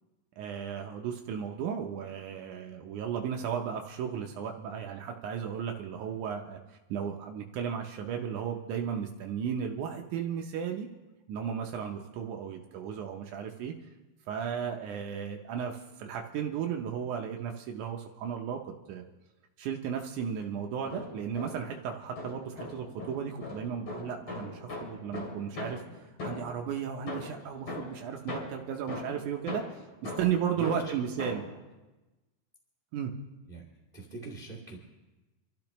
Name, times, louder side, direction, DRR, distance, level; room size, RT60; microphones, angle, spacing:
voice 1, 0.4-10.9 11.3-13.7 14.3-19.0 19.6-31.4 32.9-33.1, right 8 dB, 90° right, 2 dB, 1.7 m, -35 dB
sound 1, 20.7-21.8 22.2-26.7 27.1-31.6, left 2 dB, 35° left, 3.1 m, -41 dB
voice 2, 30.6-31.0 33.5-33.6 33.9-34.8, right 3 dB, 20° right, 0 dB, 1.3 m, -40 dB
28.5 x 12.0 x 3.0 m, 1.1 s
omnidirectional pair, 4.5 m